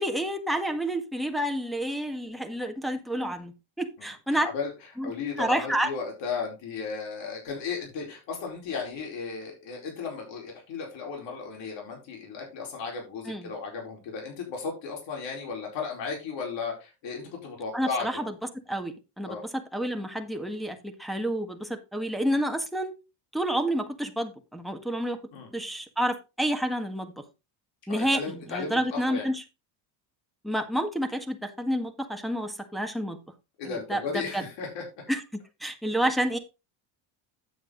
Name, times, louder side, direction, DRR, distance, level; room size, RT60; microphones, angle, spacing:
voice 1, 0.0-4.5 5.0-5.1 5.4-5.9 13.3-13.5 17.7-18.3 18.7-22.9 23.3-25.2 25.5-27.1 27.9-29.4 30.4-33.2 33.6-34.4 35.1-35.2 35.6-36.4, right 1 dB, ahead, 4 dB, 1.7 m, -29 dB
voice 2, 4.0-4.7 5.0-18.1 19.2-19.4 25.3-25.5 27.9-29.3 33.6-34.8, left 5 dB, 60° left, 0 dB, 4.6 m, -35 dB
9.3 x 7.3 x 3.9 m, 0.27 s
supercardioid pair, 105°, 48 cm